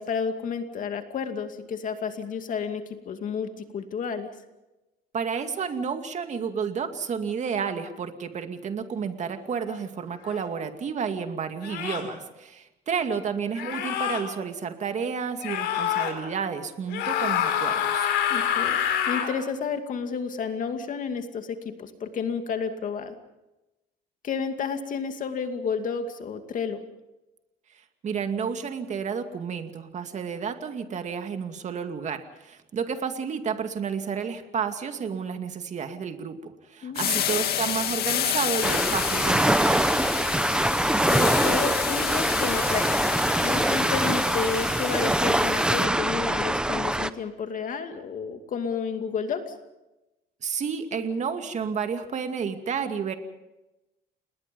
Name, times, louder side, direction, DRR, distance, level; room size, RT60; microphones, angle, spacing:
voice 1, 0.0-4.3 18.3-18.8 19.1-23.1 24.2-26.8 36.8-37.4 41.1-42.8 43.4-49.5, left 6 dB, 50° left, 6 dB, 2.5 m, -31 dB
voice 2, 5.1-18.1 28.0-39.8 50.4-53.1, right 6 dB, 45° right, 7 dB, 2.3 m, -31 dB
sound 1, 10.3-10.4 11.6-12.1 13.5-14.2 15.4-16.1 16.9-19.3, left 10 dB, 85° left, 4.6 m, -26 dB
sound 2, 36.9-45.9, left 10 dB, 65° left, 2.2 m, -30 dB
sound 3, 38.6-47.1, right 1 dB, 5° right, 0.9 m, -24 dB
29.0 x 20.0 x 5.4 m, 0.99 s
cardioid pair, 110°, 17 cm